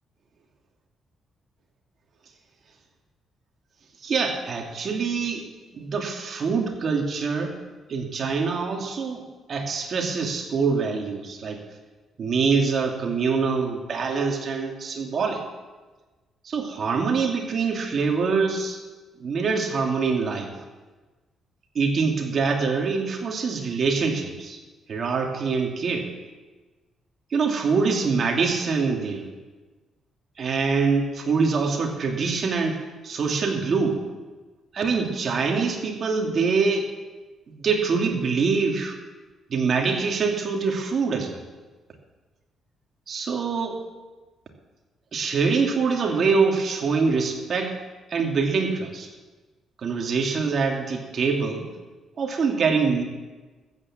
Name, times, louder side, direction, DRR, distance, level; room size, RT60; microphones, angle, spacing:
voice 1, 4.0-5.5 5.7-7.6 7.9-9.2 9.5-11.6 12.2-15.4 16.4-18.8 19.2-20.5 21.7-24.6 24.9-26.1 27.3-29.3 30.4-34.0 34.7-36.9 37.5-39.0 39.5-41.4 43.1-43.8 45.1-47.8 48.1-49.1 49.8-51.7 52.2-53.0, right 5 dB, 50° right, 2 dB, 2.5 m, -24 dB
13.5 x 8.8 x 7.5 m, 1.3 s
cardioid pair, 90°, 0 cm